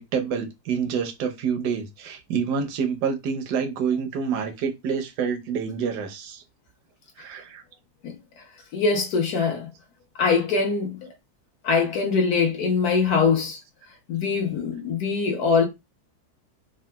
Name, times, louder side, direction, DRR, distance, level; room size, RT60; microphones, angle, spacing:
voice 1, 0.0-6.4 7.2-7.6, right 6 dB, 75° right, 1.2 m, -27 dB
voice 2, 8.7-9.7 10.2-11.1 11.6-13.6 14.1-15.7, left 5 dB, 65° left, 1.2 m, -22 dB
3.7 x 2.3 x 2.2 m
omnidirectional pair, 1.8 m